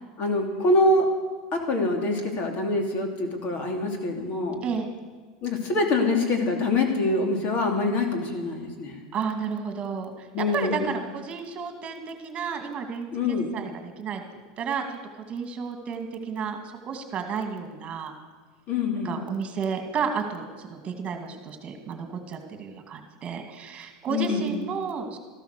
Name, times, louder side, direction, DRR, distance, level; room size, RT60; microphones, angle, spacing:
voice 1, 0.2-1.1 1.5-4.6 5.4-8.9 10.3-10.9 13.1-13.5 18.7-19.2 24.1-24.5, left 2 dB, 45° left, 3 dB, 3.0 m, -25 dB
voice 2, 4.6-4.9 9.1-14.2 14.6-15.0 15.3-18.1 18.9-25.2, right 6 dB, 30° right, 5 dB, 2.2 m, -32 dB
13.5 x 12.5 x 6.7 m, 1.5 s
supercardioid pair, 125°, 4 cm